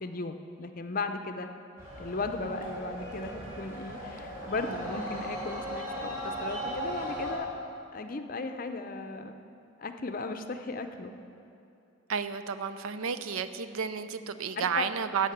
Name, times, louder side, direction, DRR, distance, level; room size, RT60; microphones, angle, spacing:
voice 1, 0.0-1.5 2.0-7.5 7.9-9.4 9.8-11.1 14.6-14.9, left 3 dB, 40° left, 7 dB, 0.6 m, -36 dB
sound 1, 1.8-7.3, equal, 15° right, 3.3 m, -37 dB
voice 2, 12.1-15.3, right 6 dB, 85° right, 11 dB, 0.5 m, -32 dB
12.5 x 5.7 x 8.6 m, 2.7 s
head